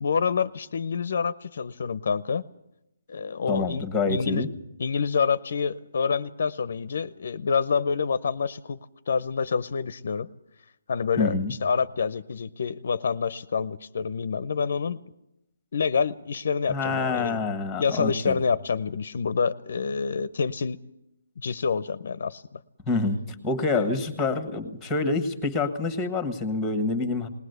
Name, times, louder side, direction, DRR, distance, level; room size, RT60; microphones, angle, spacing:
voice 1, 0.0-2.4 3.1-4.5 4.8-8.8 9.1-10.3 10.9-15.0 15.7-17.4 17.8-20.8 21.4-22.6 23.7-23.9, left 5 dB, 55° left, 17 dB, 0.7 m, -27 dB
voice 2, 3.5-4.5 11.2-11.5 16.7-18.4 22.9-23.2 23.4-27.3, left 3 dB, 5° left, 9 dB, 1.5 m, -27 dB
20.0 x 18.5 x 8.1 m, 0.85 s
hypercardioid pair, 170°, 0 cm